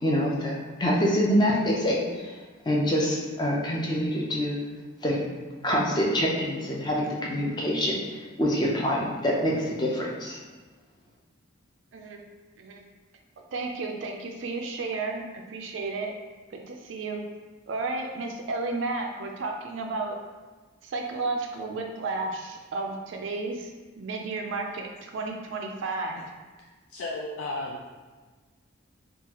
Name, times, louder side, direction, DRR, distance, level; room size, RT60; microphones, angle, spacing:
voice 1, 0.0-2.4 2.6-4.6 5.0-5.2 5.6-10.4, equal, 20° left, -3 dB, 0.5 m, -26 dB
voice 2, 11.9-12.3 12.6-12.8 13.5-16.1 16.5-17.3 17.7-20.2 20.8-23.7 24.0-26.3, right 3 dB, 65° right, 2 dB, 0.4 m, -32 dB
voice 3, 26.9-27.9, left 2 dB, 85° left, -2 dB, 0.4 m, -34 dB
3.8 x 2.4 x 2.9 m, 1.3 s
head